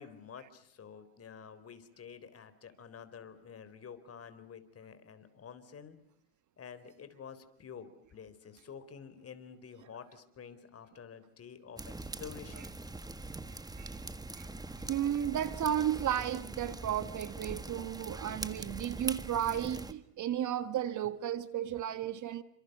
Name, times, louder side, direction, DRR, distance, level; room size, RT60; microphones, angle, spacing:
voice 1, 0.0-6.0 6.6-12.8, left 7 dB, 30° left, 4.1 m, -49 dB
sound 1, 11.8-19.9, right 2 dB, 10° right, 1.7 m, -42 dB
voice 2, 14.8-22.4, right 10 dB, 40° right, 1.5 m, -33 dB
30.0 x 26.5 x 6.7 m
supercardioid pair, 110°, 44 cm